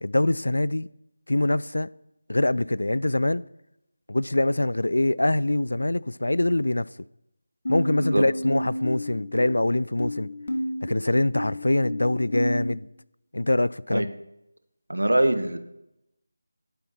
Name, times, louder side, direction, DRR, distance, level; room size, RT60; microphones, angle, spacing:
voice 1, 0.0-0.9 1.3-1.9 2.3-3.4 4.1-6.9 7.7-10.3 10.8-12.9 13.3-14.1, left 1 dB, 85° left, 0.3 m, -24 dB
sound 1, 7.6-12.7, equal, 55° left, 1.7 m, -31 dB
voice 2, 14.9-15.6, right 1 dB, 90° right, 1.1 m, -23 dB
11.5 x 4.5 x 5.6 m
figure-of-eight pair, 165°, 0 cm